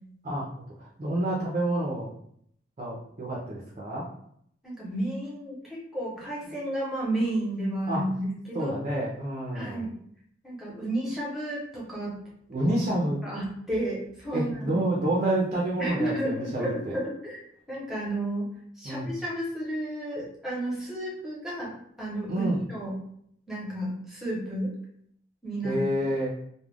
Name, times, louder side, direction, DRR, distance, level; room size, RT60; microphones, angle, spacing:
voice 1, 0.8-2.1 2.8-4.1 7.9-8.0 8.5-9.9 12.5-13.2 14.3-16.9 18.8-19.1 22.3-22.6 25.6-26.3, right 1 dB, 35° right, -4 dB, 0.5 m, -28 dB
voice 2, 4.6-8.7 9.5-9.9 10.4-12.2 13.2-14.8 15.8-17.4 17.7-18.5 18.8-23.0 23.5-24.7 25.4-25.8, right 1 dB, ahead, -6 dB, 0.8 m, -32 dB
2.3 x 2.1 x 3.3 m, 0.69 s
head